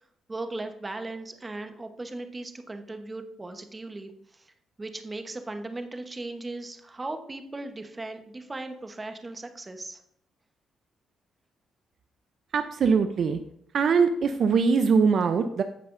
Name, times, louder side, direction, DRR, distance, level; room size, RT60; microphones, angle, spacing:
voice 1, 0.3-4.5 4.8-10.0, right 2 dB, 20° right, 6 dB, 1.0 m, -37 dB
voice 2, 12.5-13.4 13.7-15.6, right 5 dB, 60° right, 8 dB, 0.5 m, -22 dB
15.0 x 5.4 x 2.6 m, 0.70 s
cardioid pair, 90°, 0 cm